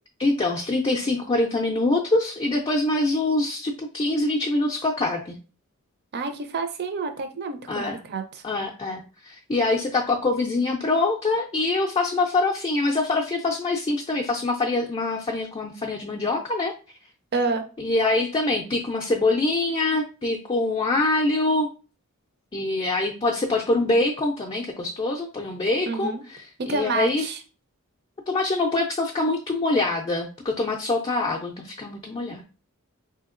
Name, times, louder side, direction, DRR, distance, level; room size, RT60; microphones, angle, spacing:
voice 1, 0.2-5.4 7.7-8.0 8.4-16.7 17.8-21.7 22.5-26.4 26.7-27.2 28.3-32.4, left 2 dB, 25° left, 0 dB, 0.4 m, -24 dB
voice 2, 6.1-8.4 17.3-17.6 25.9-26.2 26.6-27.4, right 4 dB, 50° right, 7 dB, 0.5 m, -28 dB
3.5 x 2.8 x 2.5 m, 0.34 s
head